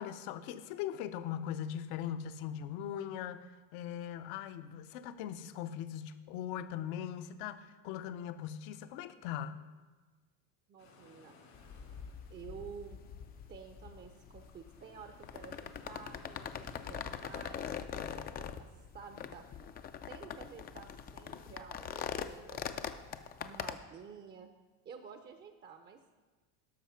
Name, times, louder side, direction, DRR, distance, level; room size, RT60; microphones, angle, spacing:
voice 1, 0.0-3.5 3.7-9.6, left 10 dB, 65° left, 11 dB, 0.8 m, -40 dB
voice 2, 10.7-11.4 12.3-13.0 13.5-18.7 18.9-19.5 20.1-22.9 23.4-24.5 24.8-26.0, right 6 dB, 25° right, 6 dB, 0.6 m, -51 dB
sound 1, 10.8-17.5, left 3 dB, 85° left, 4.0 m, -60 dB
sound 2, 11.5-23.7, left 8 dB, 25° left, 0.4 m, -43 dB
12.5 x 5.7 x 5.7 m, 1.3 s
cardioid pair, 140°, 39 cm